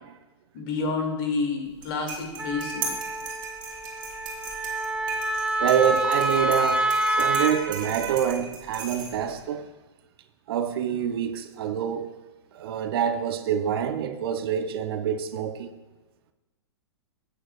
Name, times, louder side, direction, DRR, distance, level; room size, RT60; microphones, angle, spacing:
voice 1, 0.5-2.9, left 4 dB, 50° left, 2.2 m, -29 dB
sound 1, 1.7-9.4, right 4 dB, 30° right, 2.9 m, -38 dB
Wind instrument woodwind instrument, 2.4-7.6, right 2 dB, 5° right, 0.6 m, -27 dB
voice 2, 5.6-9.7 10.5-12.1 12.5-15.7, right 8 dB, 55° right, 0.7 m, -26 dB
13.5 x 9.0 x 2.3 m
hypercardioid pair, 115°, 15 cm